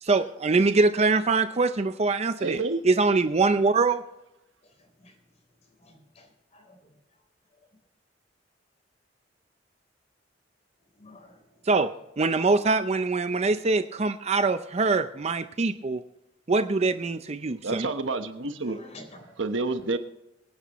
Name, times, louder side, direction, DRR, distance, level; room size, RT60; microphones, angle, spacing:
voice 1, 0.0-4.0 11.7-11.9 12.2-16.0 16.5-17.9, right 3 dB, 35° right, 10 dB, 0.6 m, -23 dB
voice 2, 2.4-2.8 17.6-18.8 19.4-20.0, right 3 dB, 85° right, 8 dB, 1.2 m, -28 dB
voice 3, 5.8-6.9 11.0-11.4 18.6-19.3, left 1 dB, 35° left, 4 dB, 3.8 m, -50 dB
24.0 x 10.0 x 3.1 m, 0.88 s
head